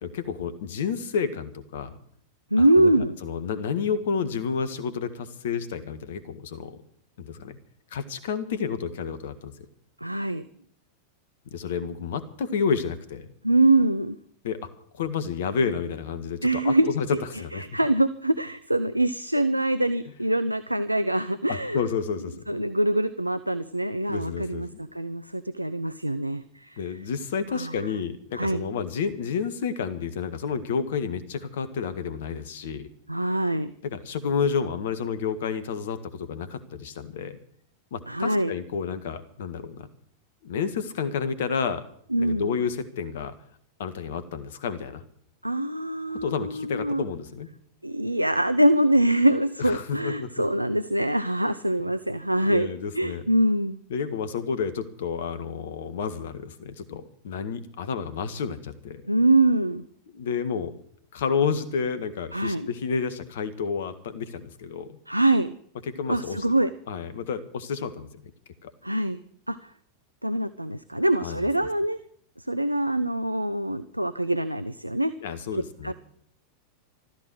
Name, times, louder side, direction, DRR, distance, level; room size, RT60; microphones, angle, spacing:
voice 1, 0.0-2.0 2.6-6.8 7.2-7.6 7.9-9.7 11.5-13.3 14.4-14.7 14.9-17.6 21.5-22.6 24.1-24.8 26.8-32.9 33.8-37.4 37.9-39.9 40.4-41.8 42.2-43.3 43.8-45.0 46.2-47.5 49.6-50.3 52.4-53.3 53.9-59.0 60.1-60.7 61.1-65.0 65.9-66.4 66.9-68.3 68.6-68.7 71.2-71.5 75.2-75.9, left 6 dB, 60° left, 12 dB, 1.6 m, -30 dB
voice 2, 2.5-3.2 10.0-10.4 13.4-14.2 16.4-17.2 17.7-21.8 22.5-24.7 24.9-26.8 27.5-27.7 28.3-28.6 33.1-33.7 38.1-38.5 42.1-42.5 45.4-47.0 47.8-53.8 59.1-59.8 62.3-62.7 65.1-65.6 66.1-66.7 68.8-69.2 69.5-69.6 70.2-72.0 72.5-75.1 75.8-75.9, right 1 dB, 85° right, 13 dB, 0.6 m, -24 dB
14.5 x 13.5 x 6.4 m, 0.62 s
figure-of-eight pair, 90°, 0 cm